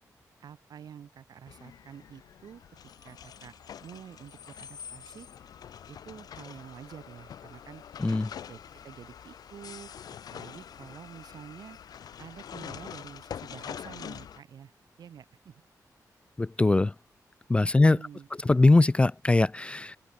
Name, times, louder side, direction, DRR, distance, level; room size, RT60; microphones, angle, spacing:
voice 1, 0.4-2.6 3.0-3.5 3.8-5.3 5.9-7.8 8.5-9.9 10.3-11.8 12.2-14.7 15.0-15.6 17.6-18.3, right 8 dB, 80° right, 2.6 m, -48 dB
sound 1, 1.5-14.4, left 9 dB, 75° left, 0.5 m, -45 dB
voice 2, 8.0-8.3 16.4-16.9 17.5-18.0 18.5-20.0, left 2 dB, 15° left, 0.3 m, -21 dB
open air
wide cardioid pair, 115°, 7 cm